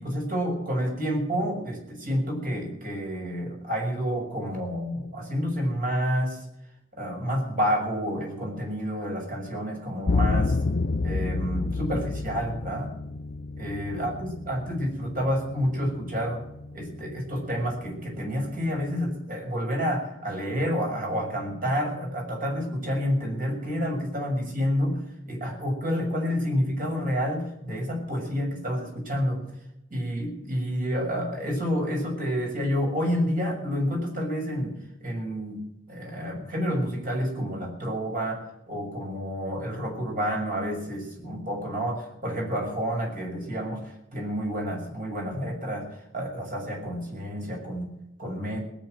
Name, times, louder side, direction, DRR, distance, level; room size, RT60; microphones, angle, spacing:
voice 1, 0.0-6.4 7.0-10.6 11.0-13.0 13.5-16.4 16.7-29.4 29.9-48.6, equal, 50° right, 1 dB, 6.4 m, -29 dB
sound 1, 10.1-19.1, left 3 dB, 50° left, 0.6 m, -31 dB
19.0 x 8.9 x 7.8 m, 0.85 s
head